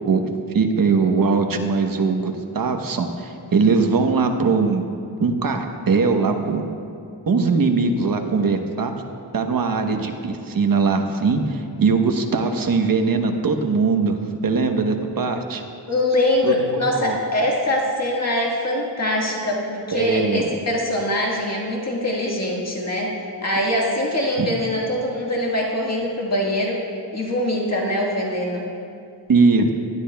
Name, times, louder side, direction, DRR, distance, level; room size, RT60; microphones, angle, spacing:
voice 1, 0.5-4.8 5.2-6.7 7.3-8.9 9.3-14.2 14.4-15.6 16.4-17.2 19.9-20.5 24.4-24.5 29.3-29.7, right 4 dB, 55° right, 5 dB, 1.0 m, -20 dB
voice 2, 15.9-23.1 23.4-26.8 27.1-28.7, left 1 dB, 40° left, -2 dB, 1.7 m, -23 dB
19.0 x 12.0 x 2.3 m, 2.4 s
wide cardioid pair, 90°, 42 cm